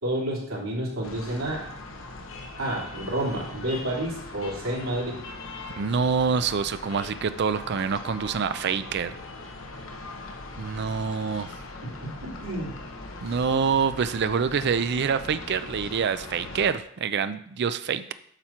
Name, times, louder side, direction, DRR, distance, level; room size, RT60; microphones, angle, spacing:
voice 1, 0.0-1.6 2.6-5.2 11.8-12.7, right 1 dB, 80° right, -4 dB, 3.2 m, -30 dB
sound 1, 1.0-16.7, left 2 dB, 70° left, 1.1 m, -40 dB
voice 2, 5.8-9.2 10.6-11.5 13.2-18.1, right 6 dB, 55° right, 12 dB, 0.4 m, -26 dB
9.0 x 5.8 x 4.4 m, 0.67 s
head